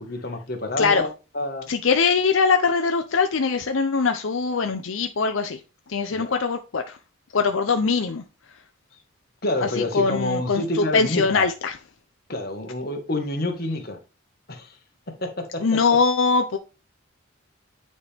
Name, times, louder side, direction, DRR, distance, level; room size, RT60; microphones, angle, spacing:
voice 1, 0.0-1.7 6.1-6.4 9.4-11.5 12.3-14.0 14.5-14.8 15.2-15.6, left 1 dB, 50° left, 1.5 m, -28 dB
voice 2, 1.7-5.6 5.9-7.0 7.3-8.2 9.6-11.7 15.6-16.6, left 4 dB, 80° left, 0.6 m, -22 dB
9.3 x 4.4 x 3.5 m
head